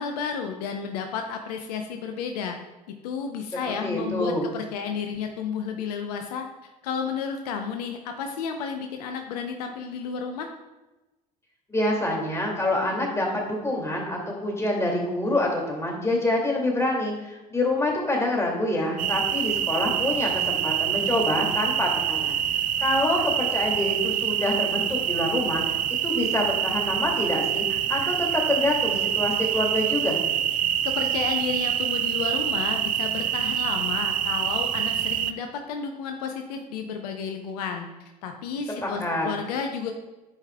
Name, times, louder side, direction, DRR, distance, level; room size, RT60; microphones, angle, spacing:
voice 1, 0.0-2.6 3.0-6.4 6.8-10.5 30.6-37.9 38.2-39.9, left 6 dB, 75° left, 5 dB, 0.6 m, -32 dB
voice 2, 3.8-4.5 11.7-22.3 22.8-25.8 26.0-27.6 27.9-30.2 38.8-39.3, left 1 dB, 15° left, -1 dB, 2.2 m, -26 dB
sound 1, 19.0-35.3, right 10 dB, 40° right, 0.4 m, -26 dB
10.5 x 4.9 x 2.2 m, 1.1 s
hypercardioid pair, 65°, 20 cm